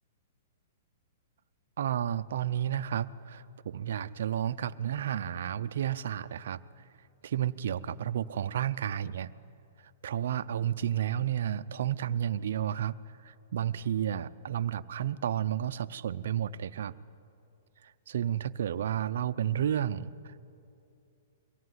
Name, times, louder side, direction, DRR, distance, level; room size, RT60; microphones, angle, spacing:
voice 1, 1.8-6.6 7.2-9.3 10.0-12.9 13.2-16.9 18.1-20.4, right 10 dB, 70° right, 11 dB, 0.7 m, -31 dB
23.5 x 17.0 x 9.6 m, 2.6 s
hypercardioid pair, 150°, 0 cm